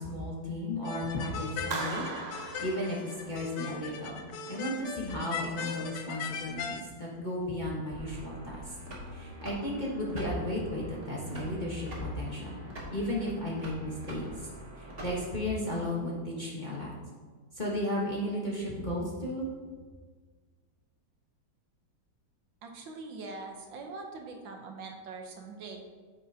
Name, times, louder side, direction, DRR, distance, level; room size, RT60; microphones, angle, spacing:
voice 1, 0.0-2.1 2.6-8.7 9.1-12.6 12.9-14.3 14.8-16.9 17.5-19.5, left 1 dB, 30° left, -5 dB, 1.0 m, -34 dB
sound 1, 0.8-6.8, left 5 dB, 70° left, 1.2 m, -39 dB
Clapping, 1.7-3.6, right 4 dB, 55° right, 0.7 m, -38 dB
sound 2, 7.9-15.5, equal, 30° right, 1.7 m, -44 dB
voice 2, 22.6-25.9, right 3 dB, 75° right, 2 dB, 1.6 m, -43 dB
9.2 x 7.3 x 2.8 m, 1.5 s
omnidirectional pair, 2.1 m